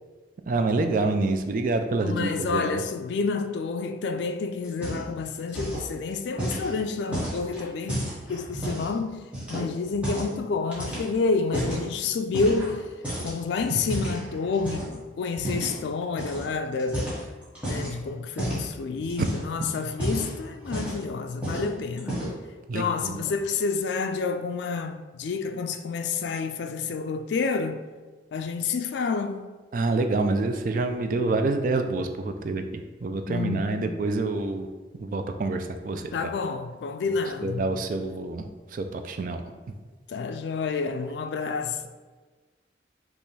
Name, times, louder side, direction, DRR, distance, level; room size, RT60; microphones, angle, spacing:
voice 1, 0.5-2.7 13.7-13.8 19.2-19.3 22.7-23.2 29.7-34.7 35.0-36.3 37.4-39.4, right 3 dB, 50° right, 0.4 m, -27 dB
voice 2, 2.0-12.9 13.2-17.1 17.7-22.2 22.7-27.8 28.3-29.6 33.3-33.9 36.1-37.7 40.1-41.9, left 4 dB, 80° left, 0.3 m, -29 dB
sound 1, 4.6-5.2 5.5-5.9 6.4-8.9 9.3-10.4 10.7-11.8 12.3-12.8 13.0-14.9 15.4-15.8 16.2-16.4 16.8-17.9 18.4-18.7 19.0-19.5 19.9-21.1 21.4-21.7 22.0-22.4, right 1 dB, 5° right, 1.4 m, -32 dB
5.4 x 3.0 x 3.2 m
head